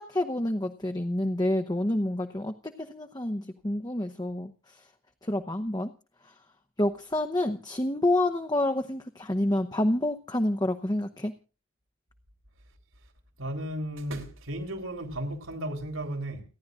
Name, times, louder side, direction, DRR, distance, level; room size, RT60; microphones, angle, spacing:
voice 1, 0.0-4.8 5.2-5.9 6.2-6.3 6.8-11.3, left 1 dB, 20° left, 0.8 m, -28 dB
voice 2, 13.4-16.4, right 1 dB, 85° right, 3.9 m, -34 dB
29.5 x 11.0 x 2.5 m
head